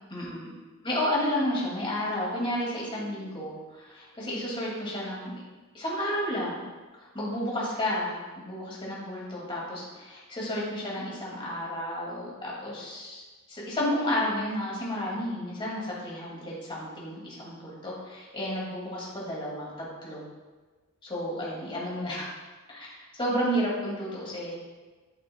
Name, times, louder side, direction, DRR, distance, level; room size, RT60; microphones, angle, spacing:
voice 1, 0.1-0.5 0.8-5.3 5.7-6.6 7.0-13.2 13.5-19.7 20.0-20.2 21.0-22.3 22.7-24.5, equal, 25° left, -5 dB, 2.4 m, -31 dB
9.2 x 8.3 x 2.3 m, 1.3 s
head